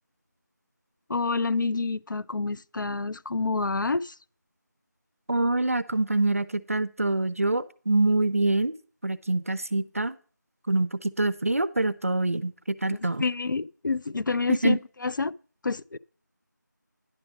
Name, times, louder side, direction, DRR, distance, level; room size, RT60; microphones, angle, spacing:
voice 1, 1.1-4.1 12.9-15.4 15.6-16.0, left 4 dB, 85° left, 0.4 m, -28 dB
voice 2, 5.3-8.8 9.0-10.2 10.7-13.2 14.5-14.8, right 2 dB, 45° right, 0.5 m, -25 dB
10.0 x 5.0 x 6.1 m
figure-of-eight pair, 175°, 10 cm